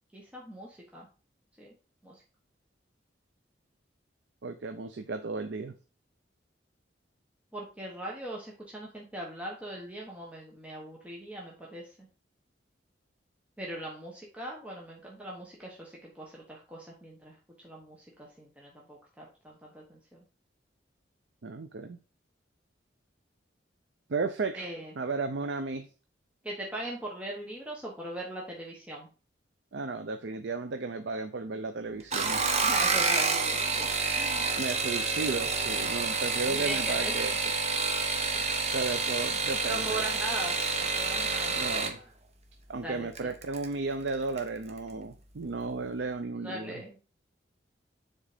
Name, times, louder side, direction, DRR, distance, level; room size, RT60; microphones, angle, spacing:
voice 1, 0.1-1.1 1.6-1.7 2.0-2.2 7.5-12.1 13.6-20.2 24.6-24.9 26.4-29.1 32.6-34.5 36.5-37.1 39.7-41.6 42.0-42.1 42.8-43.3 46.4-47.0, right 1 dB, 5° right, -3 dB, 1.2 m, -40 dB
voice 2, 4.4-5.7 21.4-22.0 24.1-25.9 29.7-32.4 34.6-37.3 38.3-38.4 38.7-40.0 41.5-42.0 42.7-46.8, right 3 dB, 70° right, 8 dB, 0.6 m, -34 dB
sound 1, 32.0-42.0 43.2-43.7 44.1-44.5 44.8-44.9, right 4 dB, 35° right, 1.0 m, -29 dB
7.3 x 3.8 x 5.0 m, 0.35 s
head